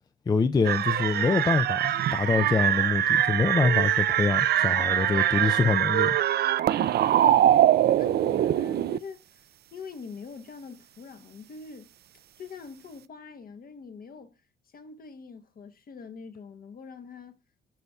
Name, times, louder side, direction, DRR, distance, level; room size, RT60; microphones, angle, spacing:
voice 1, 0.3-6.2, left 4 dB, 20° left, 0.3 m, -25 dB
sound 1, 0.6-9.0, right 11 dB, 55° right, 0.4 m, -23 dB
voice 2, 7.8-11.9 12.4-14.4 14.7-17.4, left 5 dB, 50° left, 1.0 m, -44 dB
11.5 x 4.1 x 2.3 m
cardioid pair, 90°, 20 cm